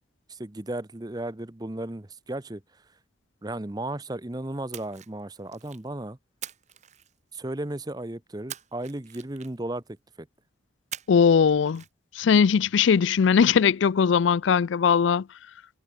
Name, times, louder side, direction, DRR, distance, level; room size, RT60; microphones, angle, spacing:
voice 1, 0.3-2.6 3.4-6.2 7.3-9.8 10.2-10.3, right 1 dB, 20° right, 0.8 m, -34 dB
Splash splatter, 4.7-5.9 6.4-7.6 8.5-9.8 10.9-11.4 11.7-11.9, right 10 dB, 40° right, 1.9 m, -42 dB
voice 2, 11.1-11.8 12.2-15.2, left 6 dB, 80° left, 0.4 m, -20 dB
head